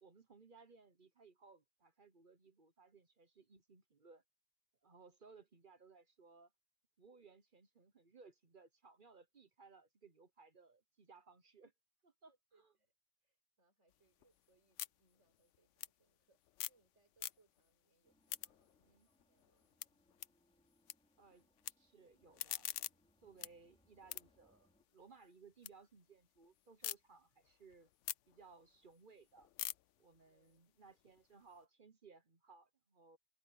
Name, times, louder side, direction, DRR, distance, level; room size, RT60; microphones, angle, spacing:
voice 1, 0.0-4.2 4.8-6.5 7.0-11.7 12.0-12.3 12.6-12.7 18.8-19.1 21.2-22.7 23.2-27.9 28.3-29.5 30.0-33.2, right 4 dB, 45° right, 1.2 m, -63 dB
voice 2, 12.3-12.9 13.2-19.8 30.2-30.7, right 3 dB, 85° right, 6.8 m, -78 dB
sound 1, 13.9-16.9 17.1-17.7 18.1-20.9 21.2-21.7 22.1-25.7 26.1-27.0 27.4-31.6, left 13 dB, 85° left, 0.9 m, -48 dB
sound 2, 18.0-24.9, equal, 5° left, 4.7 m, -77 dB
omnidirectional pair, 1.2 m